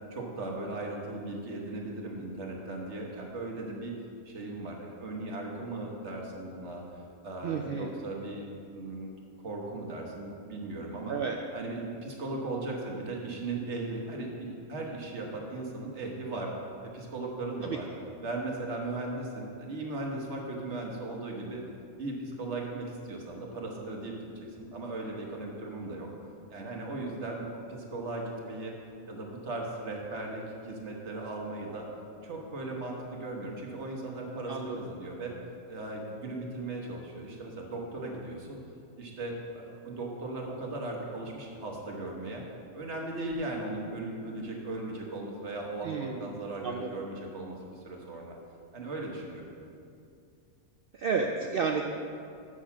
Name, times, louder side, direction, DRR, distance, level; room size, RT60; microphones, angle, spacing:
voice 1, 0.1-3.9 4.2-11.2 11.5-16.5 16.8-17.9 18.2-21.6 22.0-26.1 26.5-28.7 29.1-31.9 32.2-35.4 35.7-38.6 39.0-42.4 42.7-48.4 48.7-49.5, right 2 dB, 55° right, -1 dB, 1.4 m, -37 dB
voice 2, 7.4-7.9 11.1-11.4 17.6-17.8 34.5-34.8 45.8-46.3 46.6-46.9 50.9-51.8, right 5 dB, 85° right, 3 dB, 0.5 m, -31 dB
7.4 x 6.4 x 5.7 m, 2.4 s
omnidirectional pair, 1.5 m